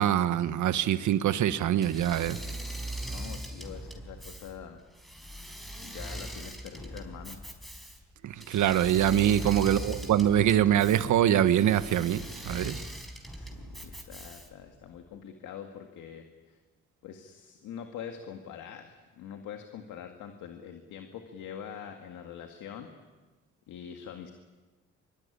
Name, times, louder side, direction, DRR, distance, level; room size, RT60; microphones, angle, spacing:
voice 1, 0.0-2.4 8.2-12.8, right 11 dB, 75° right, 12 dB, 1.4 m, -24 dB
Engine / Mechanisms, 1.8-14.7, right 1 dB, ahead, 4.6 m, -40 dB
voice 2, 3.1-4.8 5.8-7.4 9.4-9.6 13.3-16.6 17.0-22.9 23.7-24.3, left 8 dB, 90° left, 5 dB, 2.0 m, -44 dB
24.5 x 23.0 x 9.9 m, 1.3 s
cardioid pair, 90°, 30 cm